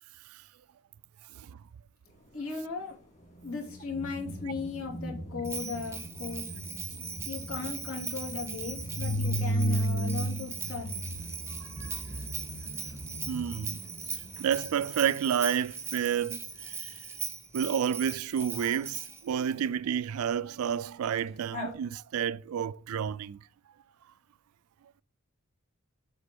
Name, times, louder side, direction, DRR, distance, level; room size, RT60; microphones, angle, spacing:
voice 1, 2.3-3.0 3.4-6.5 7.3-10.9, left 5 dB, 85° left, 2.8 m, -37 dB
sound 1, 3.4-15.0 21.2-21.3 21.5-21.7, right 1 dB, 35° left, 1.9 m, -35 dB
Bell, 5.4-19.3, right 6 dB, 10° right, 0.6 m, -40 dB
voice 2, 13.3-13.8 14.4-16.9 17.5-23.4, right 8 dB, 85° right, 0.3 m, -30 dB
7.2 x 3.8 x 5.2 m
head